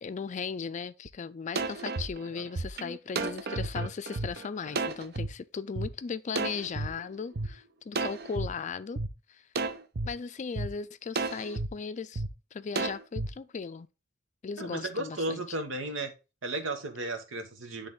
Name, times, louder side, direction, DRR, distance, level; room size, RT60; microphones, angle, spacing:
voice 1, 0.0-9.0 9.3-9.4 10.0-12.2 12.5-13.9 14.4-15.4, left 5 dB, 40° left, 0.4 m, -37 dB
sound 1, 1.1-1.2 1.6-5.3 5.8-5.9 6.4-7.5 7.9-8.5 9.0-9.1 9.6-10.1 10.6-10.7 11.2-11.7 12.2-12.3 12.8-13.3, right 3 dB, 55° right, 0.6 m, -32 dB
voice 2, 14.6-16.1 16.4-17.9, right 2 dB, 85° right, 1.5 m, -34 dB
10.0 x 3.4 x 3.7 m
head